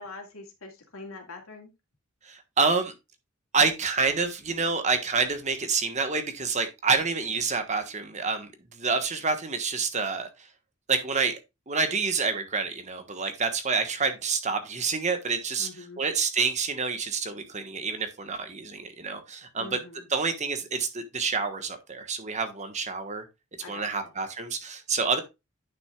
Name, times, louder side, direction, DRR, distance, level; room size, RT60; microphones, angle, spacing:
voice 1, 0.0-1.7 15.6-16.0 19.5-20.1 23.6-23.9, left 3 dB, 90° left, 2.5 m, -43 dB
voice 2, 2.2-2.9 3.5-10.3 10.9-11.3 11.7-19.8 20.1-23.2 23.7-25.2, right 4 dB, 35° right, 1.3 m, -28 dB
10.0 x 6.0 x 2.3 m
head